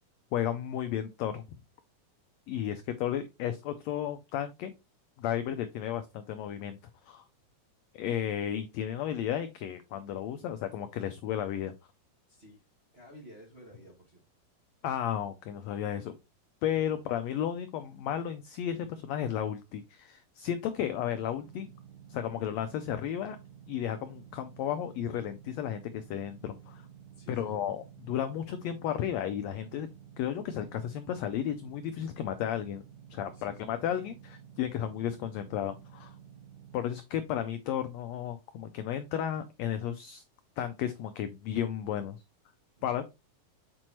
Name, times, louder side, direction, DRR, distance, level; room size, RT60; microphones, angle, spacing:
voice 1, 0.3-1.4 2.5-4.7 5.2-6.8 7.0-7.2 7.9-11.7 14.8-16.1 16.6-21.7 22.1-23.4 23.7-26.8 27.3-29.9 30.2-32.8 33.1-36.2 36.7-40.2 40.6-42.2 42.8-43.0, left 10 dB, 85° left, 1.5 m, -33 dB
voice 2, 12.3-12.6 12.9-14.2 27.1-27.6 33.3-33.8 42.8-43.0, equal, 30° right, 1.2 m, -53 dB
sound 1, 20.8-36.8, right 8 dB, 80° right, 2.0 m, -52 dB
7.5 x 4.4 x 3.0 m
omnidirectional pair, 3.6 m